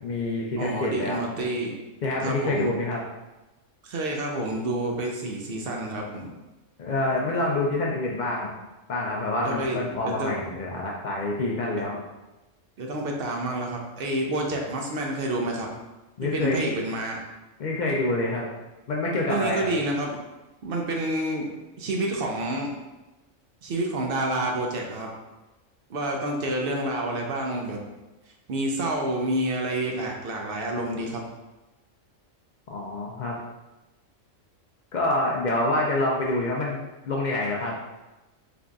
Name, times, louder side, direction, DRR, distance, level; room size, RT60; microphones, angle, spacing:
voice 1, 0.0-1.2 2.0-3.0 6.8-8.5 8.9-12.0 16.2-16.8 17.6-18.5 18.9-19.7 32.7-33.4 34.9-36.8 37.0-37.8, left 2 dB, 90° left, -2 dB, 0.4 m, -27 dB
voice 2, 0.6-1.8 2.2-2.7 3.8-6.3 9.4-10.3 12.8-15.7 16.3-17.2 19.3-20.2 20.6-21.5 21.8-22.7 23.6-25.1 25.9-27.8 28.5-31.2, right 1 dB, 60° right, 1 dB, 0.6 m, -28 dB
3.8 x 3.4 x 2.3 m, 1.0 s
omnidirectional pair, 1.3 m